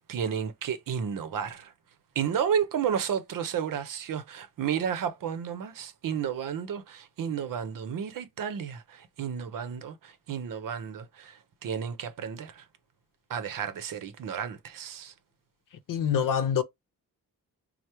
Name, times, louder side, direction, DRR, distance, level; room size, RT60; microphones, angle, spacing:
voice 1, 0.1-1.7 2.2-11.4 11.6-12.6 13.3-15.1, right 8 dB, 70° right, 0.7 m, -32 dB
voice 2, 15.9-16.6, left 8 dB, 65° left, 0.6 m, -25 dB
4.6 x 2.0 x 2.8 m
wide cardioid pair, 180°, 35 cm